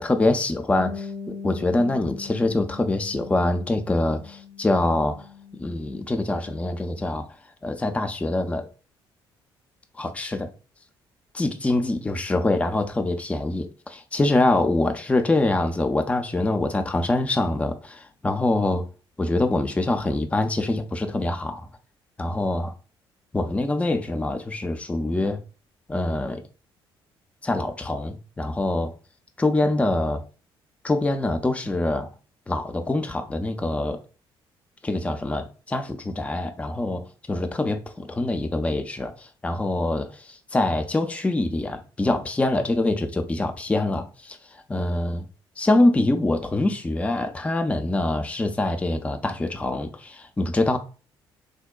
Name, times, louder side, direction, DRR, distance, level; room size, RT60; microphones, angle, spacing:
voice 1, 0.0-5.3 5.6-7.3 7.6-8.7 10.0-10.5 11.3-18.8 19.2-21.7 22.2-22.7 23.3-25.4 25.9-26.4 27.4-28.9 29.4-30.2 30.8-32.1 32.5-34.0 34.8-44.4 44.7-45.3 45.6-50.8, left 2 dB, 10° left, 0.4 m, -24 dB
Bass guitar, 0.7-7.0, left 5 dB, 85° right, 0.5 m, -40 dB
3.6 x 2.1 x 2.3 m
figure-of-eight pair, 45°, 13 cm